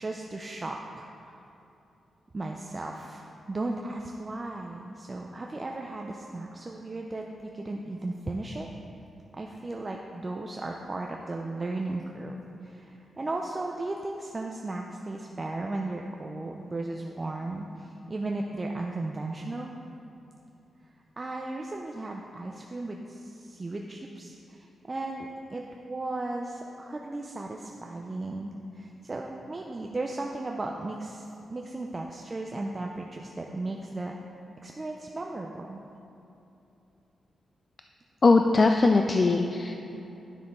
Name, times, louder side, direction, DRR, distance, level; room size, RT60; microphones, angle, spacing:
voice 1, 0.0-1.4 2.3-8.7 9.3-12.4 12.6-19.8 21.2-31.2 31.5-34.1 34.6-35.8, right 2 dB, 30° right, 1 dB, 0.5 m, -35 dB
voice 2, 38.2-39.9, left 3 dB, 40° left, 5 dB, 0.3 m, -21 dB
10.0 x 5.8 x 3.7 m, 2.9 s
cardioid pair, 90°, 0 cm